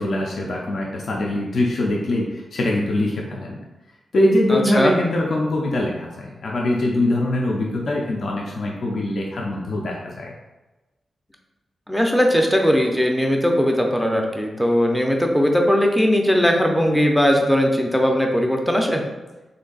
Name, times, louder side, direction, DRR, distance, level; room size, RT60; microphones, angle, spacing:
voice 1, 0.0-3.6 4.1-10.3, left 1 dB, 60° left, -2 dB, 0.5 m, -23 dB
voice 2, 4.5-4.9 11.9-19.0, equal, 5° left, 2 dB, 0.5 m, -19 dB
3.2 x 2.6 x 3.8 m, 1.1 s
wide cardioid pair, 130°, 0 cm